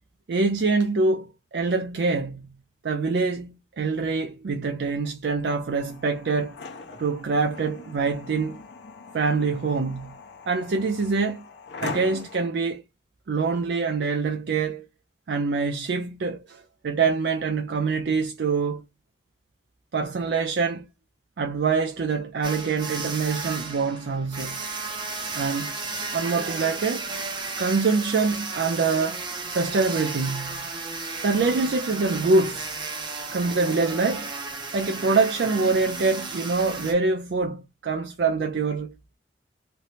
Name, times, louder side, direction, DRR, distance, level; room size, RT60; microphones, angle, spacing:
voice 1, 0.3-2.5 2.8-6.6 7.0-8.6 9.1-10.2 10.5-11.4 11.8-12.8 13.3-14.9 15.3-18.8 19.9-20.9 21.4-24.6 25.4-25.7 26.1-27.1 27.6-30.7 31.2-32.7 33.3-34.3 34.7-38.9, right 4 dB, 75° right, 0.4 m, -25 dB
sound 1, 5.7-12.5, left 4 dB, 85° left, 0.7 m, -41 dB
sound 2, 22.4-36.9, right 3 dB, 25° right, 0.7 m, -34 dB
3.2 x 2.0 x 2.7 m
head